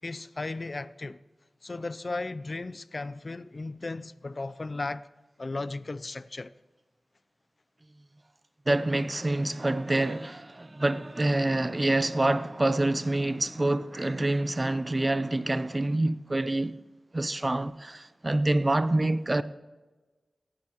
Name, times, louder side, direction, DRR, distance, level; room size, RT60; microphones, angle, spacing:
voice 1, 0.0-1.2 1.6-5.1 5.4-6.5, left 3 dB, 40° left, 0.4 m, -35 dB
voice 2, 8.7-16.7 17.1-19.4, right 2 dB, 25° right, 0.5 m, -26 dB
17.5 x 10.5 x 3.0 m
wide cardioid pair, 75°, 0 cm